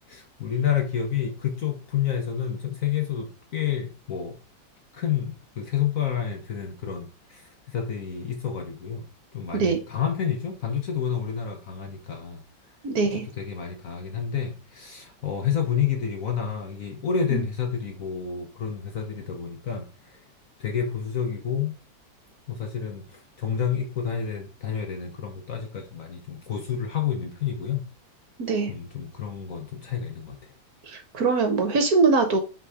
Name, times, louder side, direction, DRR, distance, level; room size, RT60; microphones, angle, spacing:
voice 1, 0.1-4.3 4.9-9.0 9.3-12.4 13.4-19.9 20.6-21.7 22.5-23.0 23.4-27.9 28.7-30.4, left 8 dB, 55° left, 1.0 m, -29 dB
voice 2, 12.8-13.3 17.3-17.4 28.4-28.7 30.9-32.4, right 4 dB, 55° right, 1.2 m, -22 dB
5.9 x 3.6 x 4.7 m
omnidirectional pair, 2.1 m